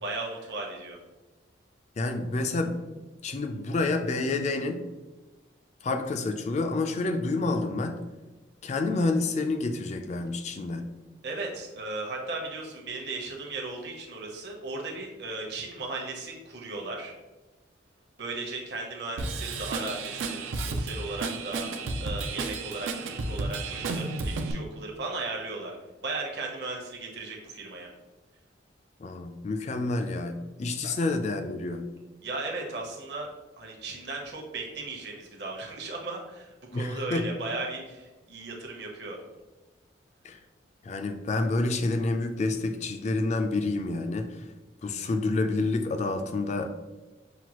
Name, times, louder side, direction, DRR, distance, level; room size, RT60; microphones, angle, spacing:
voice 1, 0.0-1.0 11.2-17.1 18.2-21.7 22.0-25.8 26.0-27.9 30.8-31.0 32.2-39.2, right 3 dB, 55° right, 0 dB, 0.8 m, -36 dB
voice 2, 2.0-2.8 3.2-4.9 5.8-8.0 8.6-10.9 29.0-31.9 36.7-37.3 40.2-40.4 40.8-44.4 44.8-46.7, left 2 dB, 35° left, 7 dB, 0.3 m, -28 dB
Drum kit / Drum, 19.2-24.5, right 3 dB, 85° right, 0.4 m, -32 dB
5.9 x 2.3 x 2.9 m, 1.1 s
head